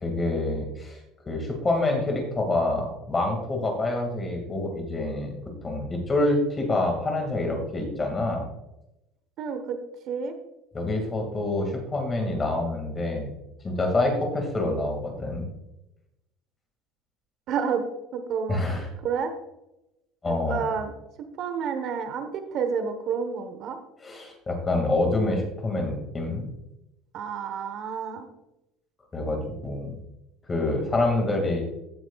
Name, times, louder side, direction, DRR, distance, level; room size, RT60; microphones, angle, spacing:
voice 1, 0.0-1.0 1.3-5.3 5.6-8.5 10.7-13.3 13.6-15.5 18.5-18.9 20.2-20.7 24.0-26.5 29.1-29.9 30.5-31.6, left 2 dB, 15° left, 2 dB, 2.1 m, -26 dB
voice 2, 9.4-9.8 10.1-10.3 17.5-17.8 18.1-18.7 19.0-19.3 20.3-20.9 21.4-23.8 27.1-28.3, right 6 dB, 45° right, 7 dB, 1.1 m, -29 dB
15.5 x 9.2 x 2.4 m, 0.91 s
cardioid pair, 165°, 0 cm